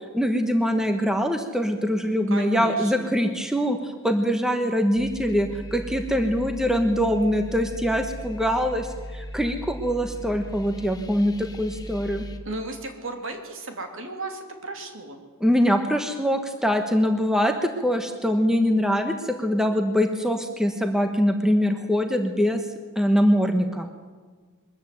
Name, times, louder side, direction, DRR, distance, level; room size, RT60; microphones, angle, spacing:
voice 1, 0.1-12.2 15.4-22.6 22.9-23.9, equal, ahead, 5 dB, 1.2 m, -23 dB
voice 2, 2.3-3.1 12.4-15.2, right 2 dB, 60° right, 5 dB, 3.2 m, -34 dB
sound 1, 5.0-12.4, left 1 dB, 15° left, 1.3 m, -38 dB
22.5 x 14.0 x 9.3 m, 1.5 s
head